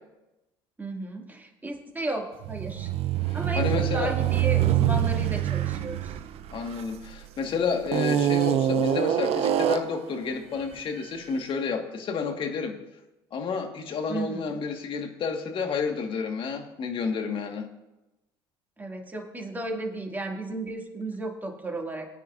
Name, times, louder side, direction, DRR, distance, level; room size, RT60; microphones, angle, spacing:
voice 1, 0.8-2.9 3.3-6.1 14.1-14.6 18.8-22.1, right 2 dB, 15° right, 1 dB, 2.7 m, -34 dB
sound 1, 2.4-7.2 7.9-10.0, right 11 dB, 60° right, 0.8 m, -25 dB
voice 2, 3.3-4.1 6.5-12.8 13.3-17.7, left 5 dB, 50° left, 4 dB, 1.9 m, -30 dB
21.0 x 9.2 x 2.7 m, 0.97 s
hypercardioid pair, 70°, 12 cm